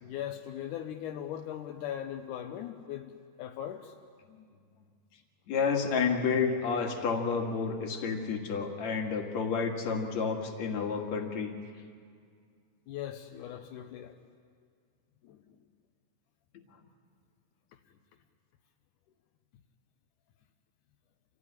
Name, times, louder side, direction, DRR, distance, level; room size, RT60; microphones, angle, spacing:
voice 1, 0.0-4.0 12.9-14.2 15.2-15.4 17.7-17.8, left 10 dB, 75° left, 4 dB, 1.9 m, -39 dB
voice 2, 5.5-11.5, left 5 dB, 50° left, 2 dB, 2.8 m, -30 dB
27.5 x 16.5 x 9.7 m, 2.1 s
omnidirectional pair, 4.4 m